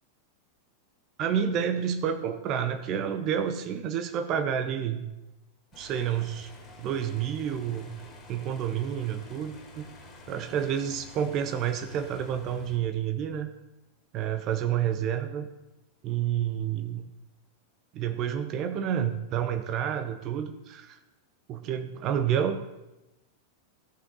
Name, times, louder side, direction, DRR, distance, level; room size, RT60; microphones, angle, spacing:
voice 1, 1.2-5.0 5.8-6.5 6.8-7.9 8.3-9.9 10.3-13.5 14.1-15.5 16.0-17.1 17.9-21.0 21.5-22.6, right 9 dB, 35° right, 8 dB, 0.6 m, -29 dB
sound 1, 5.7-12.8, left 2 dB, 25° left, 2.5 m, -49 dB
14.0 x 5.9 x 3.9 m, 0.98 s
figure-of-eight pair, 90°, 0 cm